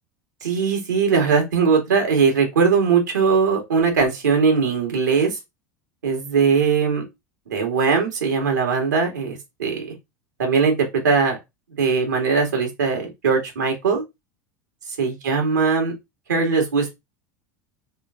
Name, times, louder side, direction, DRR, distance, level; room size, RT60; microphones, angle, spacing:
voice 1, 0.4-5.4 6.0-7.0 7.5-9.9 10.4-11.4 11.8-14.0 15.0-15.9 16.3-17.0, right 5 dB, 90° right, 1.8 m, -20 dB
3.7 x 3.2 x 3.7 m
hypercardioid pair, 90°, 9 cm